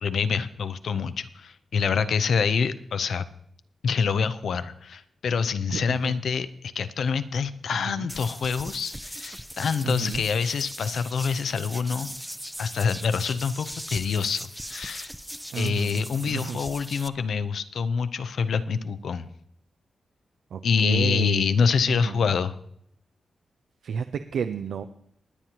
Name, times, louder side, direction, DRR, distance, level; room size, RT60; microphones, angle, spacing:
voice 1, 0.0-3.3 3.8-6.5 6.7-12.1 12.6-15.1 15.6-19.3 20.6-22.6, left 6 dB, 75° left, 12 dB, 0.6 m, -26 dB
voice 2, 5.7-6.1 7.8-8.1 9.8-10.2 15.5-16.6 20.5-21.5 21.9-22.3 23.8-24.8, right 6 dB, 85° right, 9 dB, 0.5 m, -31 dB
sound 1, 8.1-17.1, equal, ahead, 0.4 m, -39 dB
19.5 x 9.2 x 2.9 m, 0.68 s
wide cardioid pair, 110°, 0 cm